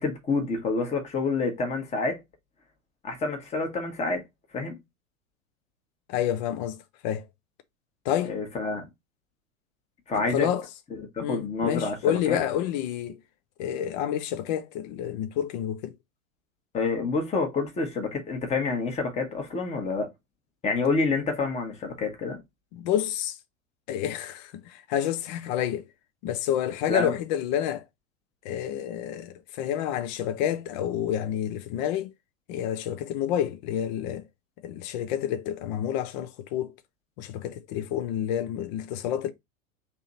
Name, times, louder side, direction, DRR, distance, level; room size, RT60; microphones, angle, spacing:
voice 1, 0.0-2.2 3.0-4.2 4.5-4.8 8.3-8.8 10.1-10.5 10.9-12.4 16.7-20.1 20.6-22.4 26.9-27.1, left 4 dB, 15° left, 1.1 m, -28 dB
voice 2, 6.1-6.8 7.0-7.3 8.0-8.4 10.1-10.6 11.2-13.2 13.6-15.9 22.7-23.4 23.9-25.8 26.2-27.8 28.4-32.1 32.5-34.2 34.6-36.7 37.2-39.3, left 10 dB, 35° left, 0.5 m, -29 dB
3.4 x 2.9 x 3.9 m
figure-of-eight pair, 90°, 42 cm